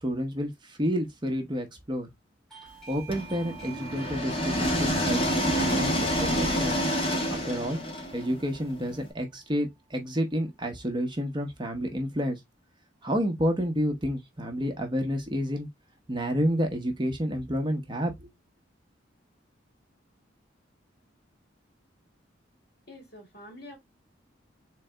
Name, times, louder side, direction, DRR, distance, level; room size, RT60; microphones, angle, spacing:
voice 1, 0.0-2.1 2.9-5.2 5.6-6.8 7.3-7.8 8.1-12.4 13.0-15.7 16.1-18.3, equal, 25° right, 0.8 m, -29 dB
Doorbell, 2.5-9.0, right 8 dB, ahead, 1.8 m, -50 dB
sound 1, 3.1-9.0, equal, 30° left, 1.2 m, -28 dB
voice 2, 22.9-23.8, left 1 dB, 55° left, 2.2 m, -46 dB
3.7 x 3.3 x 3.2 m
head